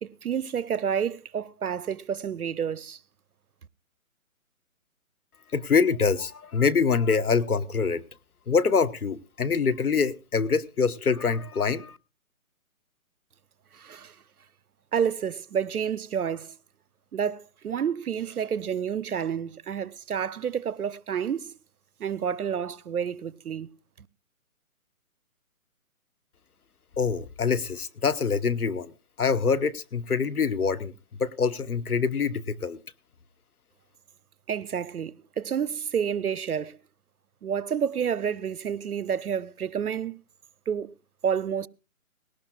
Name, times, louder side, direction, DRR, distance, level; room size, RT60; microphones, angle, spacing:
voice 1, 0.0-3.0 13.7-14.1 14.9-16.6 17.1-21.5 22.0-23.7 24.0-24.1 34.5-36.8 37.4-40.2 40.7-40.9 41.2-41.7, right 7 dB, 85° right, 0.8 m, -29 dB
voice 2, 5.5-8.0 8.5-12.0 27.0-28.9 29.2-30.9 31.2-32.8, left 5 dB, 85° left, 1.1 m, -25 dB
19.0 x 18.0 x 2.3 m
figure-of-eight pair, 145°, 43 cm